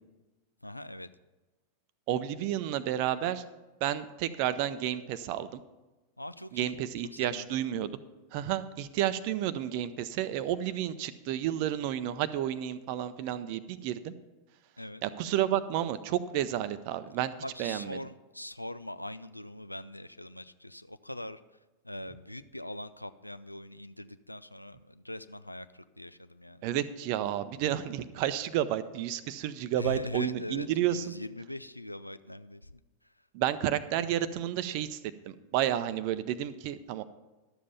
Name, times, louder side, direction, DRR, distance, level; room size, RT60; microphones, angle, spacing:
voice 1, 0.6-1.1 6.2-6.9 7.1-7.6 14.8-15.0 17.4-21.4 21.8-26.6 29.8-32.7, left 1 dB, 85° left, 14 dB, 0.4 m, -42 dB
voice 2, 2.1-3.4 3.8-5.6 6.5-7.9 8.3-14.1 15.0-17.3 17.6-18.0 26.6-31.0 33.3-35.0 35.3-37.0, right 11 dB, 45° right, 14 dB, 0.6 m, -31 dB
12.0 x 7.4 x 5.6 m, 1.1 s
figure-of-eight pair, 90°, 0 cm